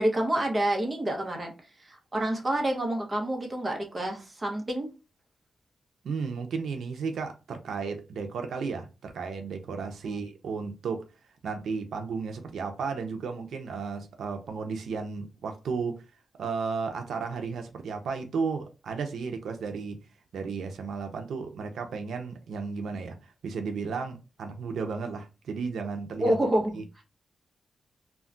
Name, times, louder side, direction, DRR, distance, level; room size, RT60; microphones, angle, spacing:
voice 1, 0.0-1.5 1.8-4.9 10.0-10.2 26.2-27.0, right 1 dB, 25° right, 0.7 m, -28 dB
voice 2, 6.0-11.0 11.4-16.0 16.4-20.0 20.3-26.4 26.7-26.8, right 5 dB, 90° right, 0.4 m, -34 dB
2.2 x 2.1 x 3.6 m
wide cardioid pair, 160°, 0 cm